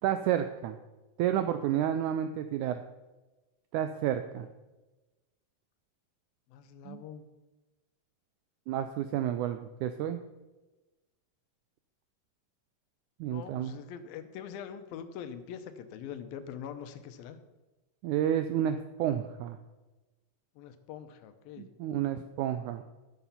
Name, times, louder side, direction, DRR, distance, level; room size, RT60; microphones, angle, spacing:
voice 1, 0.0-0.8 1.2-2.8 3.7-4.5 6.8-7.0 8.7-10.2 13.2-13.7 18.0-19.6 21.6-22.8, right 10 dB, 85° right, 9 dB, 1.7 m, -30 dB
voice 2, 6.5-7.3 13.3-17.4 20.6-21.7, left 8 dB, 85° left, 10 dB, 2.6 m, -43 dB
12.5 x 7.0 x 5.7 m, 1.1 s
omnidirectional pair, 4.0 m